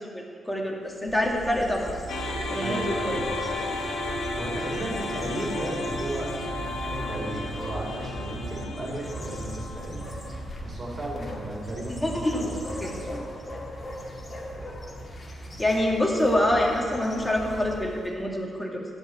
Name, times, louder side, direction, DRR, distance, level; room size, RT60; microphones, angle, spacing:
voice 1, 0.0-1.9 2.5-3.2 12.0-12.5 12.8-12.9 15.6-18.9, left 1 dB, 10° left, -1 dB, 2.2 m, -26 dB
sound 1, 0.9-18.2, equal, 30° left, 2.1 m, -38 dB
sound 2, 2.1-10.4, left 2 dB, 75° left, 1.5 m, -33 dB
voice 2, 2.6-4.1 4.4-12.9 15.5-15.6, right 1 dB, 40° right, -2 dB, 3.4 m, -35 dB
11.5 x 5.3 x 8.6 m, 2.2 s
supercardioid pair, 60°, 0 cm